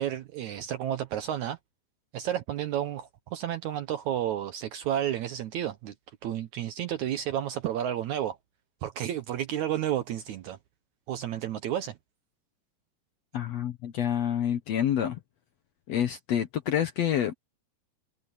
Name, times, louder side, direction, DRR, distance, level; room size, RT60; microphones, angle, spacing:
voice 1, 0.0-1.6 2.1-5.9 6.2-8.4 8.8-10.6 11.1-12.0, right 11 dB, 75° right, 1.8 m, -31 dB
voice 2, 13.3-15.2 15.9-17.3, left 10 dB, 75° left, 1.5 m, -28 dB
omnidirectional pair, 4.3 m